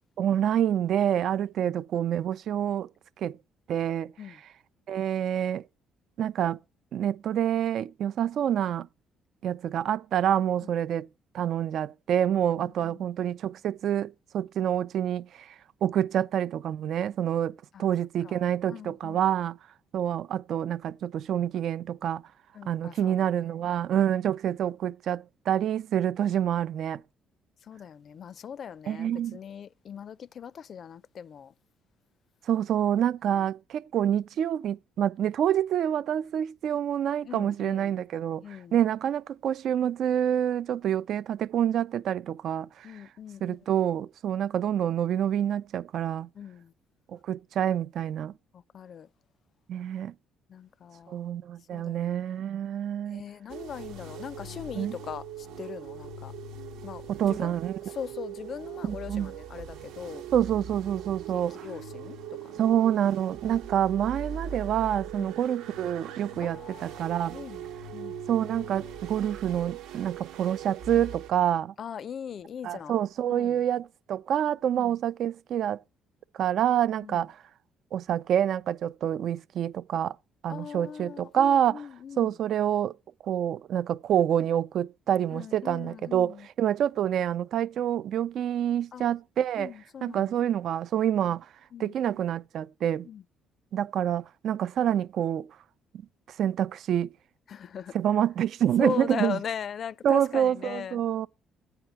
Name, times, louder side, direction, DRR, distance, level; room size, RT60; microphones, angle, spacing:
voice 1, 0.2-2.9 3.2-3.4 3.7-4.4 4.9-5.6 6.2-6.6 6.9-8.9 9.4-11.1 11.3-15.5 15.8-19.6 19.9-22.2 22.6-27.0 28.9-29.4 32.5-42.9 43.4-46.3 47.1-48.3 49.7-50.1 51.1-53.2 54.7-54.9 57.1-57.8 58.8-59.3 60.3-61.7 62.6-67.4 68.3-71.7 72.6-75.8 76.3-77.4 77.9-80.2 80.4-81.9 82.2-83.0 83.2-89.7 90.0-91.5 91.8-93.1 93.7-95.5 96.4-97.1 97.9-99.4 100.0-101.3, right 10 dB, 65° right, 0.5 m, -27 dB
voice 2, 12.6-13.0 17.7-17.9 18.2-18.4 18.7-19.3 22.5-23.4 27.7-31.5 33.3-33.5 37.2-38.0 38.4-38.7 42.8-43.6 46.4-46.7 48.5-49.1 50.5-51.2 51.7-52.2 53.1-56.3 56.8-57.5 57.9-60.2 61.1-62.7 65.2-65.4 66.4-68.2 71.8-73.0 73.3-73.6 74.7-75.0 77.0-77.2 80.5-82.4 85.3-86.5 88.9-89.0 89.6-90.3 91.7-92.2 93.0-93.2 97.5-98.0 98.8-101.0, left 8 dB, 55° left, 0.4 m, -40 dB
sound 1, 53.5-71.3, right 7 dB, 80° right, 1.1 m, -40 dB
8.9 x 4.7 x 5.8 m
supercardioid pair, 65°, 0 cm